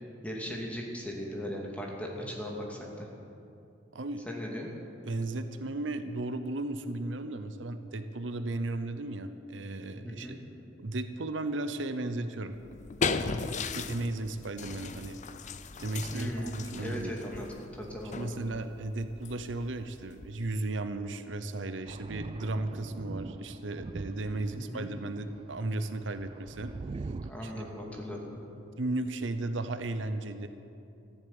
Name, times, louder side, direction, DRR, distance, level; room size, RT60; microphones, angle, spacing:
voice 1, 0.2-3.1 4.3-4.7 10.0-10.4 16.1-16.5 16.8-18.4 24.5-24.9 27.2-28.4, equal, 5° left, -2 dB, 2.6 m, -38 dB
voice 2, 3.9-4.3 5.1-10.4 10.8-12.6 13.4-13.5 13.7-15.2 15.8-17.1 18.1-26.7 27.4-27.5 28.8-30.5, right 2 dB, 80° right, 10 dB, 0.8 m, -35 dB
sound 1, 12.5-20.6, left 4 dB, 40° left, 0.6 m, -37 dB
Thunder, 21.9-24.8 25.3-27.3, right 3 dB, 30° right, 0.3 m, -42 dB
14.5 x 11.5 x 8.8 m, 2.7 s
head